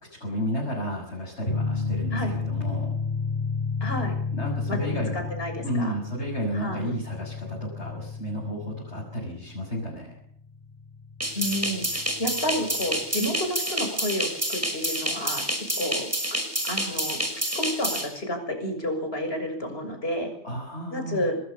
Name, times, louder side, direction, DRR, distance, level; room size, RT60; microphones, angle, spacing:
voice 1, 0.2-2.9 4.3-5.3 5.6-10.1 20.4-21.2, equal, 75° left, -3 dB, 6.6 m, -32 dB
sound 1, 1.5-12.7, left 4 dB, 40° left, 8.0 m, -32 dB
voice 2, 3.8-4.2 4.7-6.0 6.5-6.9 11.3-15.4 15.8-17.2 17.6-20.3 20.9-21.4, equal, 60° left, 5 dB, 6.9 m, -30 dB
sound 2, 11.2-18.1, right 1 dB, 15° right, 5.6 m, -28 dB
26.5 x 20.0 x 7.0 m, 0.66 s
omnidirectional pair, 1.2 m